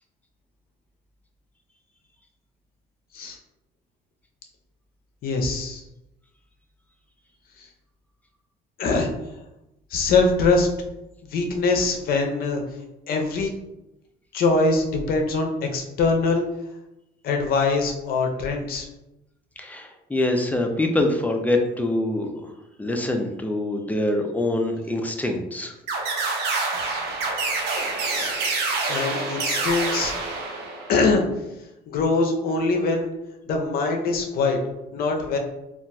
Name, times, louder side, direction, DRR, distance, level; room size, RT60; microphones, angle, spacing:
voice 1, 5.2-5.8 7.6-7.7 8.8-9.1 9.9-10.7 11.3-12.6 13.1-13.5 14.3-16.4 17.2-18.9 28.1-28.3 28.9-30.1 30.9-31.2 31.9-33.1 33.5-34.6 34.9-35.4, left 3 dB, 60° left, 2 dB, 0.6 m, -23 dB
voice 2, 19.6-22.5 22.8-25.7 26.2-26.4, left 1 dB, 10° left, 4 dB, 0.4 m, -25 dB
sound 1, 25.9-31.0, right 3 dB, 75° right, 0.6 m, -27 dB
3.8 x 2.4 x 2.2 m, 0.94 s
cardioid pair, 110°, 17 cm